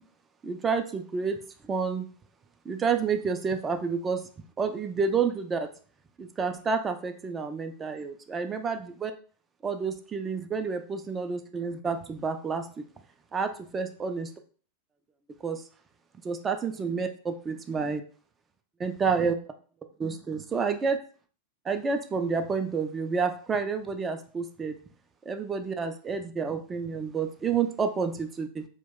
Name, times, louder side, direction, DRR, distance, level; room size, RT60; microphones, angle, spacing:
voice 1, 0.4-2.1 2.7-4.2 4.6-5.7 6.2-9.1 9.6-12.8 13.3-14.3 15.4-15.6 16.2-18.0 18.8-19.4 20.0-21.0 21.6-24.8 25.3-28.6, right 5 dB, 20° right, 7 dB, 0.3 m, -29 dB
2.3 x 2.0 x 3.6 m, 0.42 s
figure-of-eight pair, 90°, 0 cm